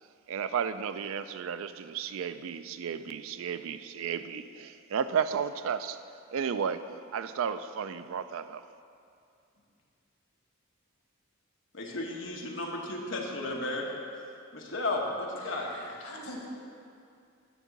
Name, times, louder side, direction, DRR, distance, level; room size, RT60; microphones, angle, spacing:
voice 1, 0.3-6.0 6.3-6.8 7.1-8.6, right 7 dB, 70° right, 0.3 m, -33 dB
voice 2, 11.7-13.8 14.5-15.7, left 2 dB, 60° left, 1.2 m, -34 dB
voice 3, 15.4-16.5, left 1 dB, 90° left, 1.5 m, -44 dB
11.0 x 3.7 x 7.1 m
head